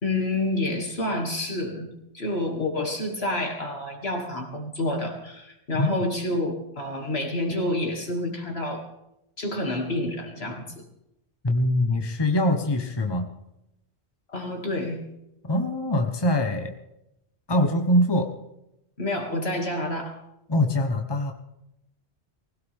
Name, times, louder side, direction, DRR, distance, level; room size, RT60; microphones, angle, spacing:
voice 1, 0.0-1.9 2.1-8.8 9.4-10.9 14.3-15.0 19.0-20.2, left 1 dB, 70° left, 1 dB, 2.8 m, -28 dB
voice 2, 11.4-13.3 15.5-16.7 17.5-18.3 20.5-21.3, left 1 dB, 25° left, 4 dB, 1.2 m, -23 dB
20.5 x 16.5 x 3.6 m, 0.85 s
omnidirectional pair, 1.1 m